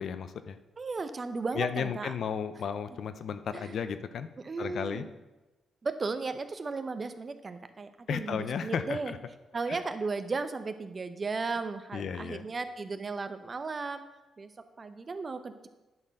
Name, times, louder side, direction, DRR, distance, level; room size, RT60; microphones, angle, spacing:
voice 1, 0.0-0.6 1.5-4.3 4.6-5.0 8.1-9.2 9.7-9.8 11.9-12.4, left 7 dB, 65° left, 11 dB, 0.6 m, -34 dB
voice 2, 0.8-2.1 3.5-3.8 4.4-5.1 5.8-9.1 9.5-14.0 14.4-15.7, right 4 dB, 35° right, 10 dB, 0.8 m, -35 dB
10.5 x 4.5 x 6.4 m, 1.1 s
cardioid pair, 85°, 0 cm